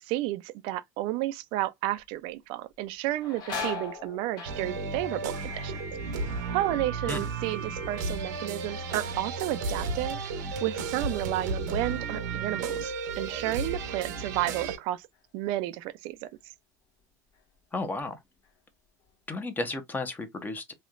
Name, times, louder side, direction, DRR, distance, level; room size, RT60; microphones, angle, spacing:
voice 1, 0.0-5.8 6.5-10.2 10.6-15.1 15.3-16.3, right 16 dB, 65° right, 0.3 m, -32 dB
sound 1, 2.0-2.4 2.7-8.3 8.6-9.2 9.7-12.6 12.9-13.1 14.0-14.2 14.7-15.8 16.2-16.4 17.0-17.6 18.0-19.1, left 4 dB, 50° left, 1.0 m, -43 dB
sound 2, 4.4-14.8, right 4 dB, 85° right, 0.7 m, -33 dB
voice 2, 17.7-18.2 19.3-20.7, left 2 dB, 20° left, 0.8 m, -33 dB
3.1 x 2.8 x 2.4 m
hypercardioid pair, 95°, 9 cm